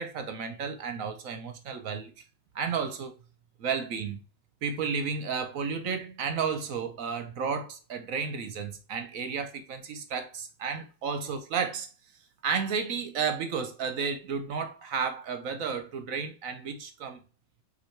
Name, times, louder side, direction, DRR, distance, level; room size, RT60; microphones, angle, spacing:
voice 1, 0.0-2.1 2.5-3.1 3.6-4.2 4.6-11.9 12.4-17.2, right 6 dB, 60° right, 0.9 m, -32 dB
8.4 x 2.9 x 4.5 m
omnidirectional pair, 2.2 m